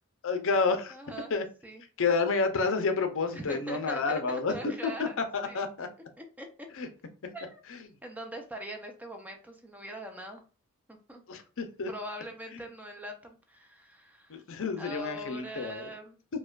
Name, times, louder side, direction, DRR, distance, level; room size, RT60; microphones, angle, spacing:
voice 1, 0.2-0.9 1.3-1.4 2.0-4.5 4.8-5.1 5.3-5.9 6.8-6.9 7.7-7.8 11.3-11.9 12.5-12.6 14.3-15.9, left 4 dB, 60° left, 7 dB, 0.6 m, -29 dB
voice 2, 0.9-1.3 1.6-1.8 3.3-5.1 5.4-5.6 6.2-6.7 7.3-7.6 8.0-10.4 10.9-11.2 11.9-14.4 14.8-16.2, equal, 5° right, 3 dB, 0.4 m, -42 dB
4.8 x 2.2 x 2.4 m, 0.36 s
head